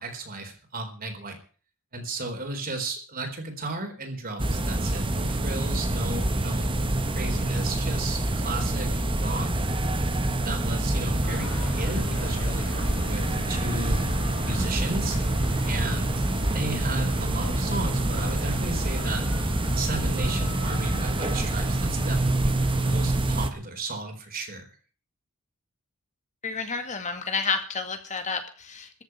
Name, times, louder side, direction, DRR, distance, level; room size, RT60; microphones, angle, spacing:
voice 1, 0.0-1.4 1.9-6.7 7.2-9.6 10.4-14.0 14.4-15.2 15.6-19.3 19.7-24.7, right 2 dB, 45° right, 4 dB, 4.1 m, -34 dB
sound 1, 4.4-23.5, right 1 dB, 25° right, 1.3 m, -26 dB
sound 2, 11.2-23.0, left 2 dB, 75° left, 4.4 m, -39 dB
voice 2, 26.4-29.0, left 5 dB, 35° left, 7 dB, 2.0 m, -30 dB
14.5 x 7.7 x 9.6 m, 0.40 s
head